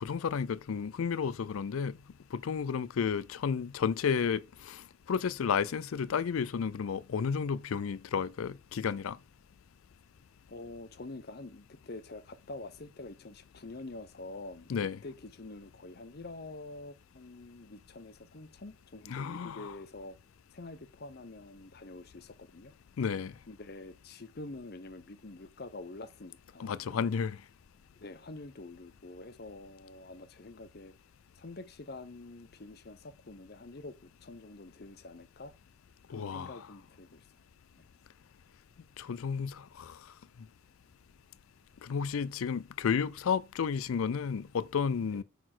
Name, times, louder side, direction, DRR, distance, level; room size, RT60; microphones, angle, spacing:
voice 1, 0.0-2.0 2.3-9.2 14.7-15.0 19.1-19.8 23.0-23.3 26.6-27.4 36.1-36.6 39.0-40.0 41.8-45.2, left 6 dB, 85° left, 0.4 m, -32 dB
voice 2, 10.5-20.2 20.5-22.7 23.5-26.9 28.0-30.9 31.4-35.5 36.1-37.2 45.1-45.2, left 2 dB, 50° left, 0.8 m, -46 dB
9.2 x 4.2 x 6.1 m
head